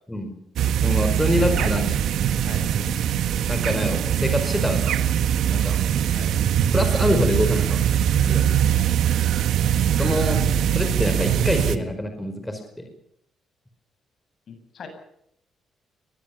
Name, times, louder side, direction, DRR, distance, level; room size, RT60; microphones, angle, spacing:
sound 1, 0.6-11.8, right 9 dB, 75° right, 1.6 m, -22 dB
voice 1, 0.8-1.9 2.8-2.9 3.5-4.9 5.5-5.8 6.7-8.4 10.0-10.4 10.7-12.8, left 1 dB, 10° left, 6 dB, 4.9 m, -25 dB
voice 2, 1.4-2.0 2.4-2.7 6.1-6.3 10.0-10.5 14.5-14.9, left 4 dB, 55° left, 7 dB, 8.0 m, -37 dB
22.5 x 20.0 x 7.2 m, 0.78 s
cardioid pair, 90°, 0 cm